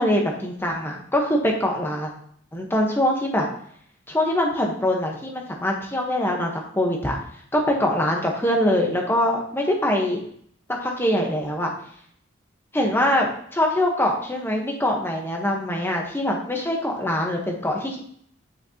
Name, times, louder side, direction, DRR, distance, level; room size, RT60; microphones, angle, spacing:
voice 1, 0.0-2.1 2.5-3.5 4.1-7.2 7.5-10.2 10.8-11.7 12.7-18.0, left 1 dB, 10° left, 0 dB, 1.3 m, -23 dB
9.2 x 6.3 x 3.0 m, 0.63 s
head